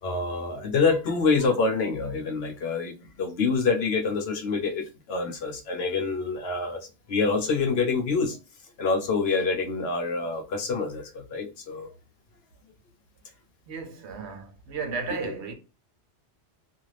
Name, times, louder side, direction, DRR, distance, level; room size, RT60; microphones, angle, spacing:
voice 1, 0.0-8.4 8.8-11.9, left 4 dB, 65° left, 0.8 m, -26 dB
voice 2, 13.7-15.5, right 4 dB, 70° right, 0.9 m, -34 dB
2.5 x 2.3 x 3.1 m
omnidirectional pair, 1.2 m